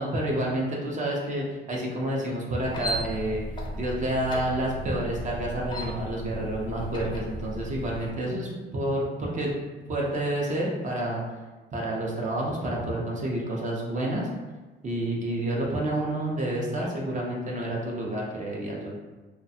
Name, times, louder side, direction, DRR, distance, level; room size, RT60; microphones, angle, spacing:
voice 1, 0.0-3.4 3.8-9.5 9.9-11.2 11.7-14.3 14.8-18.9, right 1 dB, 40° right, -3 dB, 0.6 m, -29 dB
sound 1, 2.6-8.1, equal, 25° left, 0.5 m, -35 dB
2.4 x 2.1 x 2.7 m, 1.2 s
cardioid pair, 90°, 20 cm